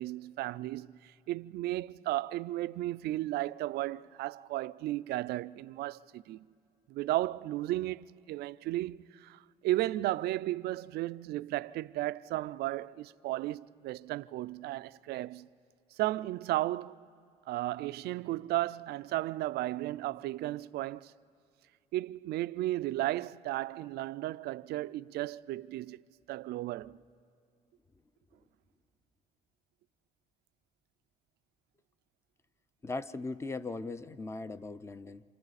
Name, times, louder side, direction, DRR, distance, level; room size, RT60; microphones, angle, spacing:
voice 1, 0.0-6.4 6.9-15.5 15.9-17.0 17.5-21.1 21.9-26.0 26.3-27.0, right 16 dB, 75° right, 0.4 m, -34 dB
voice 2, 32.8-35.2, left 3 dB, 15° left, 0.6 m, -39 dB
28.0 x 27.5 x 4.1 m
cardioid pair, 110°, 17 cm